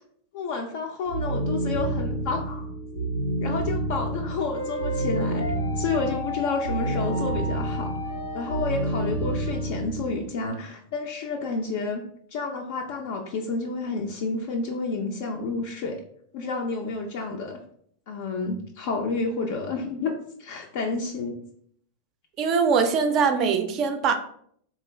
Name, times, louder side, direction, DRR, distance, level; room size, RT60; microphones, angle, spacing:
voice 1, 0.3-2.6 3.4-5.5 5.8-8.0 8.3-12.0 12.3-16.0 16.3-17.6 18.1-21.4, left 4 dB, 50° left, 2 dB, 0.3 m, -30 dB
sound 1, 1.0-10.3, right 1 dB, 90° right, 0.5 m, -29 dB
sound 2, 4.5-9.7, left 2 dB, 90° left, 0.8 m, -35 dB
voice 2, 22.4-24.2, right 5 dB, 35° right, 7 dB, 0.4 m, -22 dB
3.7 x 2.3 x 3.0 m, 0.65 s
figure-of-eight pair, 90°, 0 cm